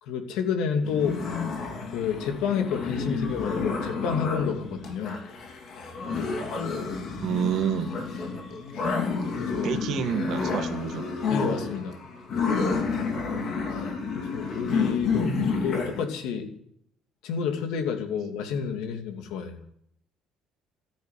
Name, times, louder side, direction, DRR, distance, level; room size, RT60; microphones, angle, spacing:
voice 1, 0.0-1.2 1.9-5.2 8.7-9.0 9.3-9.8 11.3-12.0 14.1-16.5 17.2-19.6, left 7 dB, 80° left, 5 dB, 2.6 m, -30 dB
sound 1, 0.8-16.1, left 4 dB, 40° left, 2.9 m, -30 dB
voice 2, 7.2-7.9 9.6-11.0 15.1-15.6, right 9 dB, 55° right, 7 dB, 1.8 m, -29 dB
14.0 x 10.5 x 9.5 m, 0.71 s
cardioid pair, 170°, 0 cm